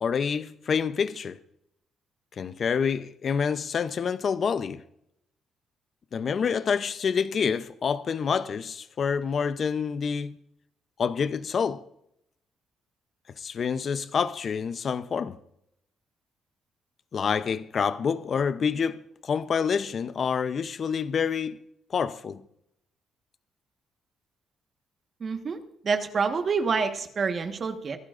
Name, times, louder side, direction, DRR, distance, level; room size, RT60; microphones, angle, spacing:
voice 1, 0.0-1.4 2.4-4.8 6.1-10.4 11.0-11.8 13.4-15.4 17.1-21.6 21.9-22.4, left 6 dB, 50° left, 0.7 m, -27 dB
voice 2, 25.2-25.6 25.8-28.0, right 5 dB, 45° right, 1.4 m, -27 dB
25.0 x 12.0 x 2.5 m
cardioid pair, 90°, 0 cm